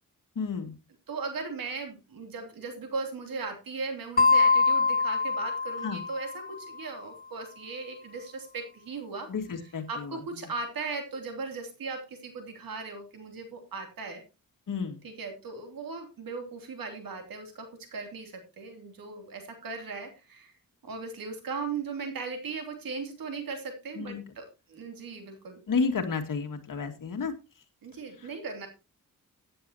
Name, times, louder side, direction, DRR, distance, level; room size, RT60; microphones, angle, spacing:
voice 1, 0.4-0.7 5.8-6.0 9.3-10.2 14.7-15.0 24.0-24.2 25.7-27.3, left 5 dB, 70° left, 6 dB, 2.3 m, -31 dB
voice 2, 1.1-9.3 9.9-14.2 15.0-20.5 20.8-25.6 27.8-28.7, right 4 dB, 90° right, 5 dB, 3.0 m, -38 dB
sound 1, 4.2-6.7, left 4 dB, 25° left, 0.6 m, -24 dB
15.5 x 9.8 x 2.9 m, 0.28 s
cardioid pair, 95°, 34 cm